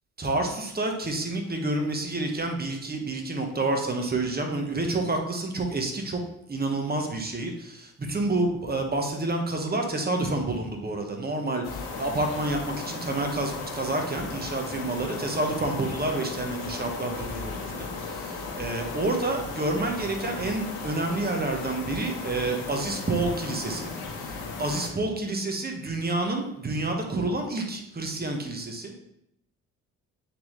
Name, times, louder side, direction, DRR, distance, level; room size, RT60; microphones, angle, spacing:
voice 1, 0.2-6.2 6.5-23.9 24.1-28.9, right 2 dB, 25° right, 3 dB, 1.4 m, -29 dB
sound 1, 11.6-24.9, left 4 dB, 65° left, 1.6 m, -36 dB
8.6 x 3.6 x 3.3 m, 0.80 s
hypercardioid pair, 50°, 41 cm